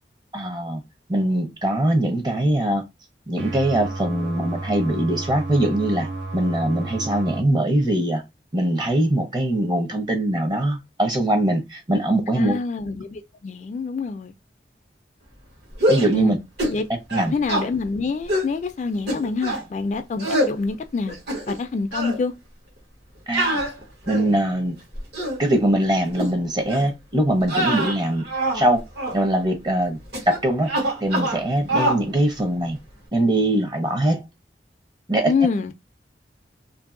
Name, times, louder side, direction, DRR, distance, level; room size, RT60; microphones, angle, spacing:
voice 1, 0.3-0.8 1.1-2.8 3.3-8.2 8.5-12.6 15.9-16.4 17.1-17.3 23.3-23.6 24.1-24.7 25.4-28.3 28.5-28.8 29.1-30.0 30.3-30.7 31.0-32.8 33.1-34.2 35.1-35.3, right 1 dB, 25° right, 0.7 m, -22 dB
sound 1, 3.4-7.4, right 2 dB, 85° right, 0.7 m, -32 dB
voice 2, 12.4-14.3 16.1-16.3 16.7-16.8 17.3-21.2 21.5-22.3 35.2-35.7, left 4 dB, 40° left, 0.3 m, -26 dB
sound 2, 15.7-16.2 16.6-16.8 17.1-17.7 18.3-18.5 19.1-19.6 20.2-20.5 21.1-21.7 21.9-22.2 23.3-24.4 24.9-25.4 26.1-26.3 26.7-26.9 27.4-28.7 29.0-29.2 30.1-30.4 30.7-31.4 31.7-32.0, right 1 dB, 65° right, 1.2 m, -24 dB
2.6 x 2.6 x 2.5 m
head